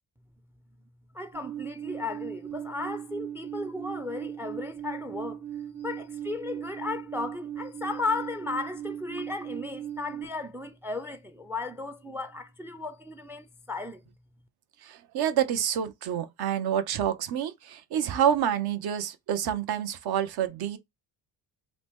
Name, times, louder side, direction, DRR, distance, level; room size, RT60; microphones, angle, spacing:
voice 1, 1.1-5.4 5.8-14.0, left 3 dB, 5° right, 0.3 m, -35 dB
Alarm, 1.3-10.2, right 10 dB, 45° right, 1.3 m, -38 dB
voice 2, 14.8-20.8, right 9 dB, 60° right, 0.7 m, -28 dB
2.9 x 2.1 x 3.3 m
cardioid pair, 95°, 42 cm